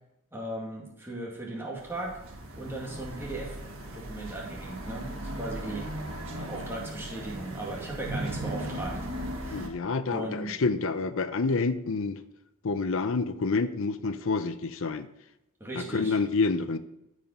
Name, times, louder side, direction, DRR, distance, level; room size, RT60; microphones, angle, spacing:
voice 1, 0.3-2.1 2.6-3.6 3.9-5.1 5.3-5.9 6.3-9.0 9.4-9.7 10.1-10.5 15.6-16.2, right 2 dB, 10° right, -3 dB, 2.1 m, -37 dB
sound 1, 1.8-9.7, right 1 dB, 65° right, 1.7 m, -37 dB
voice 2, 9.5-12.2 12.6-15.1 15.7-16.8, left 4 dB, 60° left, 11 dB, 0.6 m, -28 dB
14.0 x 5.1 x 5.4 m, 0.88 s
head